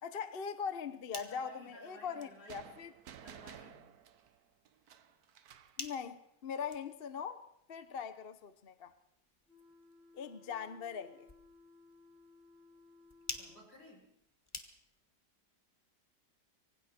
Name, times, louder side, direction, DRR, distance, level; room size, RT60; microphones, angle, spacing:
voice 1, 0.0-2.9 5.8-7.4 7.7-8.9 10.1-11.3, left 6 dB, 40° left, 11 dB, 0.9 m, -41 dB
sound 1, 0.7-15.2, left 2 dB, 15° left, 1.7 m, -53 dB
voice 2, 1.2-2.8 3.2-4.0 13.3-14.1, right 1 dB, 70° left, -1 dB, 7.9 m, -56 dB
sound 2, 2.5-5.8, right 9 dB, 65° right, 1.4 m, -54 dB
sound 3, 9.5-13.7, left 3 dB, 35° right, 5.0 m, -61 dB
25.5 x 23.5 x 4.4 m, 0.74 s
omnidirectional pair, 1.9 m